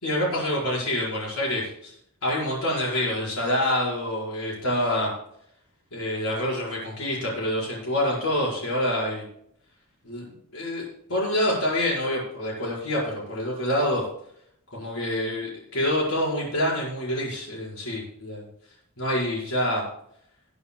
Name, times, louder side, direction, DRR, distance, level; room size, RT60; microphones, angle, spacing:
voice 1, 0.0-1.9 2.2-5.1 5.9-9.3 10.0-14.0 14.7-18.5 19.0-19.8, left 1 dB, 80° left, -4 dB, 5.4 m, -27 dB
20.0 x 9.7 x 2.4 m, 0.71 s
head